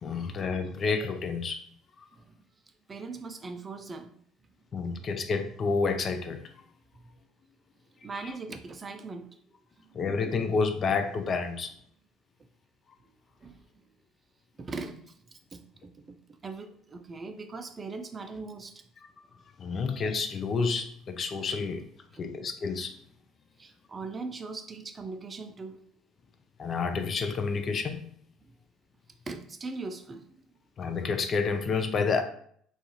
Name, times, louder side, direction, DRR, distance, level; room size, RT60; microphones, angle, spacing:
voice 1, 0.0-1.6 4.7-6.5 9.9-11.7 19.6-21.9 22.2-23.0 26.6-28.1 30.8-32.2, left 4 dB, 45° left, 7 dB, 0.4 m, -29 dB
voice 2, 2.9-4.1 4.8-4.9 8.0-9.3 9.8-10.1 13.4-13.6 14.6-16.2 16.4-18.8 19.7-19.9 22.1-22.3 23.6-25.8 28.4-28.5 29.3-30.5, right 3 dB, 30° right, 7 dB, 0.3 m, -40 dB
2.4 x 2.4 x 2.8 m, 0.63 s
hypercardioid pair, 70°, 0 cm